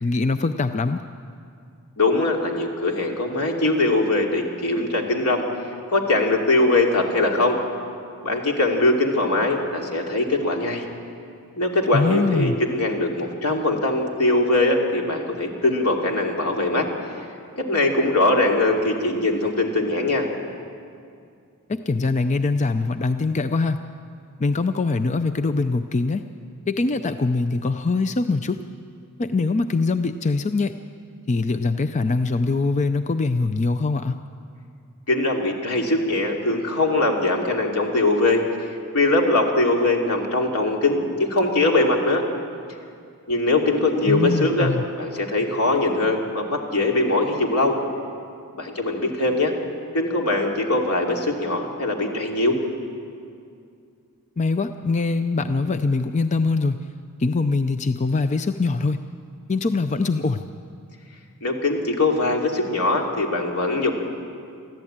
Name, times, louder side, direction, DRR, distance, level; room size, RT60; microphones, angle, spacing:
voice 1, 0.0-1.0 11.9-12.6 21.7-23.8 24.4-26.2 26.7-28.6 29.2-30.7 31.3-34.2 44.1-44.8 54.4-56.8 57.2-59.0 59.5-60.4, left 3 dB, 30° left, 9 dB, 0.5 m, -23 dB
voice 2, 2.0-5.4 5.9-7.6 8.2-10.8 11.6-16.8 17.6-20.3 35.1-38.4 38.9-42.2 43.3-44.7 45.0-47.8 48.5-49.5 49.9-52.6 61.4-63.9, left 2 dB, 80° left, 1 dB, 2.8 m, -21 dB
23.0 x 14.5 x 8.8 m, 2.4 s
head